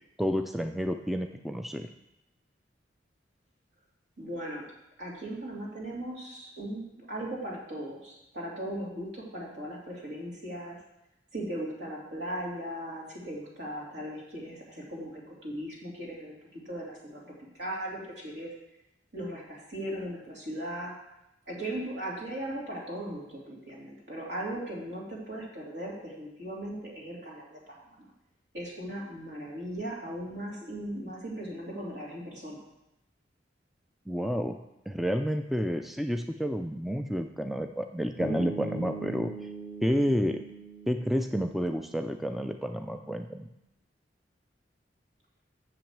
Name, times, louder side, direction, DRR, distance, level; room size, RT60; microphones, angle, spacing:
voice 1, 0.2-1.9 34.1-34.6 34.9-39.3 39.8-40.4 40.9-43.5, equal, ahead, 6 dB, 0.3 m, -30 dB
voice 2, 4.2-4.6 5.0-10.8 11.3-18.5 19.1-20.9 21.5-27.6 28.0-28.1 28.5-32.6, right 1 dB, 65° right, -4 dB, 2.9 m, -38 dB
Bass guitar, 38.2-42.3, right 4 dB, 30° right, 1.5 m, -41 dB
6.9 x 6.0 x 7.3 m, 0.88 s
head